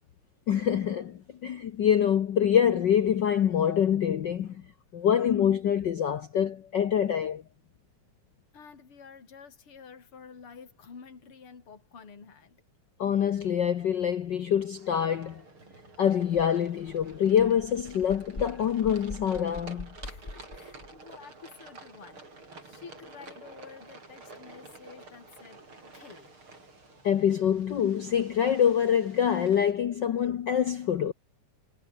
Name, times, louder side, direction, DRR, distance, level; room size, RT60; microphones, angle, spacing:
voice 1, 0.5-4.6 4.9-7.4 13.0-15.4 16.0-19.9 27.0-31.1, left 9 dB, 90° left, 0.9 m, -25 dB
voice 2, 8.5-12.6 20.0-25.6 25.9-26.3, left 6 dB, 45° left, 4.5 m, -50 dB
sound 1, 14.8-29.7, right 3 dB, 40° right, 7.0 m, -50 dB
sound 2, 16.4-16.5 16.8-20.9, left 2 dB, 15° left, 4.0 m, -44 dB
omnidirectional pair, 3.5 m